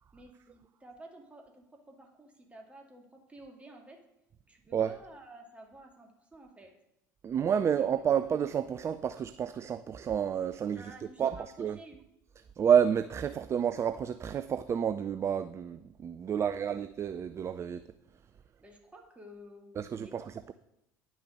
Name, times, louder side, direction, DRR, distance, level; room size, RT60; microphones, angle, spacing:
voice 1, 0.1-4.0 4.5-6.7 10.7-12.0 16.2-16.8 18.6-20.3, right 1 dB, 10° right, 2.3 m, -52 dB
voice 2, 7.2-10.8 11.2-11.8 12.6-17.8 19.8-20.2, right 8 dB, 30° right, 0.4 m, -29 dB
10.0 x 6.2 x 6.4 m
figure-of-eight pair, 65°, 10 cm